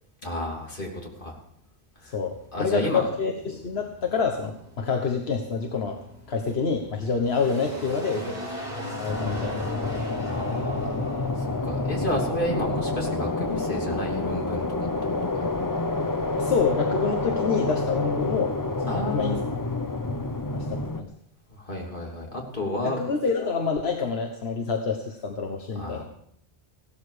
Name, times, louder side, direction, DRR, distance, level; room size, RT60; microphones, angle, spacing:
voice 1, 0.2-0.9 1.2-1.3 2.0-2.1 2.5-3.0 10.2-11.3 11.6-14.7 15.0-15.4 18.9-19.4 21.6-23.0 25.7-26.0, left 1 dB, 55° left, -1 dB, 3.3 m, -31 dB
sound 1, 2.0-16.4, equal, 40° right, 4.8 m, -41 dB
voice 2, 2.1-6.0 6.3-8.3 8.9-9.7 16.4-18.5 18.8-19.4 20.1-20.2 20.5-21.1 22.8-26.0, left 5 dB, 80° left, 3 dB, 1.5 m, -27 dB
sound 2, 9.1-21.0, left 2 dB, 20° left, 0.7 m, -28 dB
16.5 x 12.5 x 5.0 m, 0.73 s
omnidirectional pair, 1.0 m